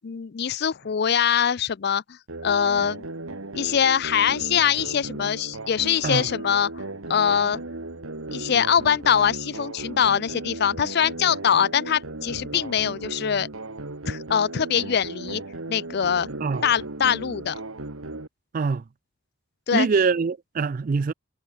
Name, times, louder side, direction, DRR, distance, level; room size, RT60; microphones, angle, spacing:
voice 1, 0.0-2.0 2.4-3.0 3.5-6.7 7.1-7.6 8.3-13.5 14.1-15.4 15.7-16.3 16.6-17.6 19.7-19.9, left 8 dB, 50° left, 0.4 m, -23 dB
sound 1, 2.3-18.3, right 2 dB, 80° right, 2.1 m, -36 dB
voice 2, 19.7-21.1, right 5 dB, 40° right, 0.4 m, -24 dB
head